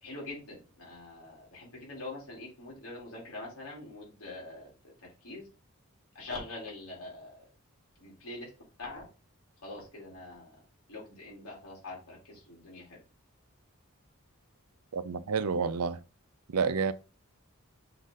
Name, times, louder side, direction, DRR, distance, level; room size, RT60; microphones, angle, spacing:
voice 1, 0.0-4.9 5.2-5.5 6.1-7.4 8.0-8.5 8.8-9.1 9.6-10.5 10.9-13.0, left 2 dB, 75° left, 3.9 m, -44 dB
voice 2, 14.9-16.0 16.5-16.9, right 5 dB, 85° right, 0.5 m, -29 dB
6.7 x 3.8 x 4.0 m
head